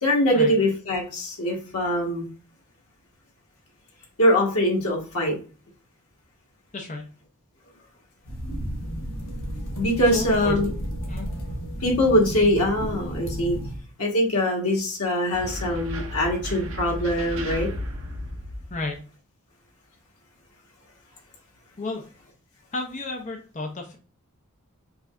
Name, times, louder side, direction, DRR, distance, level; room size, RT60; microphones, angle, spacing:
voice 1, 0.0-2.3 4.2-5.4 9.8-10.7 11.8-13.6 14.0-17.7, left 1 dB, 90° left, -1 dB, 1.6 m, -22 dB
voice 2, 6.7-7.1 10.1-10.6 11.1-11.3 18.7-19.0 21.8-22.0 22.7-24.0, left 2 dB, 30° left, 1 dB, 0.6 m, -32 dB
sound 1, 8.2-13.8, equal, 60° left, 1.2 m, -32 dB
sound 2, 15.3-19.0, equal, 65° right, 0.7 m, -34 dB
4.8 x 3.2 x 2.5 m, 0.38 s
head